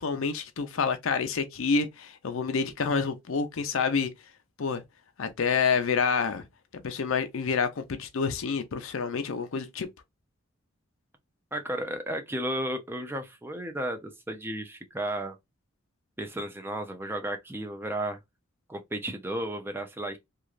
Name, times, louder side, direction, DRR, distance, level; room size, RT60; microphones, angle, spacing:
voice 1, 0.0-4.1 4.6-4.8 5.2-6.5 6.8-9.9, left 5 dB, 75° left, 0.5 m, -28 dB
voice 2, 11.5-15.4 16.2-18.2 18.7-20.2, right 1 dB, 10° right, 0.5 m, -33 dB
3.0 x 2.4 x 2.4 m
head